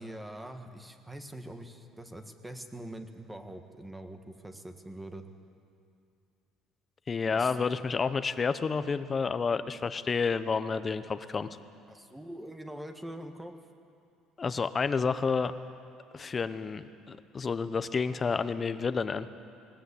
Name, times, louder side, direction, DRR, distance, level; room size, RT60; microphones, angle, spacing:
voice 1, 0.0-5.2 7.3-7.6 11.9-13.5, right 1 dB, 10° right, 6 dB, 1.6 m, -43 dB
voice 2, 7.1-11.5 14.4-15.5 16.1-19.3, left 5 dB, 30° left, 12 dB, 0.9 m, -30 dB
20.5 x 18.0 x 8.5 m, 2.5 s
cardioid pair, 105°, 0 cm